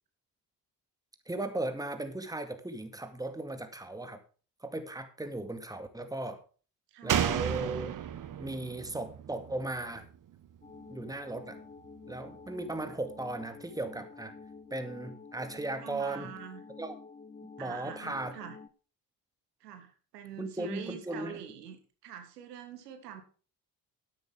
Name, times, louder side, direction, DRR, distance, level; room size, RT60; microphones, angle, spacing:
voice 1, 1.3-4.2 4.6-6.4 7.0-7.9 8.4-10.0 10.9-11.6 12.1-14.3 14.7-16.3 16.8-16.9 17.6-18.4 20.4-21.4, right 2 dB, 10° right, 8 dB, 2.1 m, -37 dB
voice 2, 6.9-7.3 15.8-16.6 17.6-18.6 19.6-23.2, right 9 dB, 75° right, 7 dB, 1.8 m, -45 dB
Slam, 7.1-10.6 10.9-11.0, right 9 dB, 40° right, 1.4 m, -33 dB
sound 1, 10.6-18.7, left 4 dB, 15° left, 1.1 m, -49 dB
13.0 x 11.0 x 3.5 m, 0.38 s
figure-of-eight pair, 45°, 48 cm